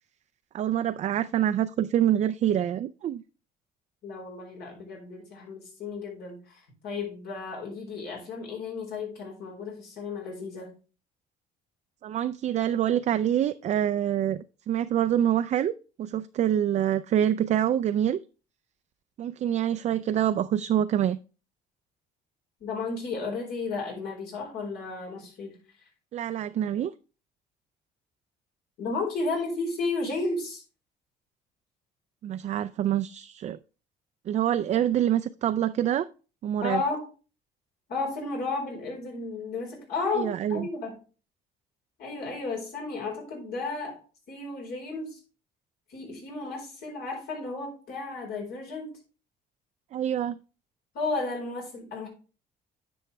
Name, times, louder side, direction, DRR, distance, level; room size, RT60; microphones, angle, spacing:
voice 1, 0.5-3.2 12.0-15.7 16.0-18.2 19.2-21.2 26.1-26.9 32.2-33.6 34.3-36.1 36.4-36.8 40.2-40.7 49.9-50.4, right 10 dB, 45° right, 0.4 m, -26 dB
voice 2, 4.0-10.7 22.6-25.6 28.8-30.6 36.6-37.1 37.9-41.0 42.0-44.0 44.3-45.2 45.9-49.0 50.9-52.1, left 3 dB, 70° left, 4.4 m, -33 dB
10.0 x 6.2 x 3.3 m
cardioid pair, 110°, 17 cm